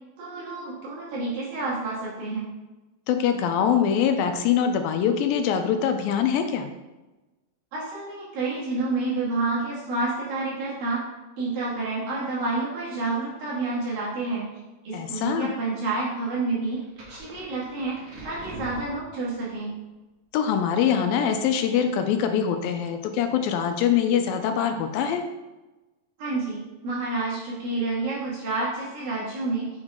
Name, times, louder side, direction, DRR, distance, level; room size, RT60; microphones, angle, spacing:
voice 1, 0.2-2.5 7.7-11.0 11.4-14.5 14.8-16.8 17.1-18.0 18.2-19.7 26.2-29.7, right 3 dB, 75° right, -7 dB, 3.9 m, -29 dB
voice 2, 3.1-6.7 14.9-15.5 20.3-25.2, left 8 dB, 80° left, 7 dB, 2.3 m, -23 dB
sound 1, 16.7-19.5, right 1 dB, 50° right, 1.6 m, -42 dB
8.0 x 4.8 x 3.7 m, 1.1 s
omnidirectional pair, 4.2 m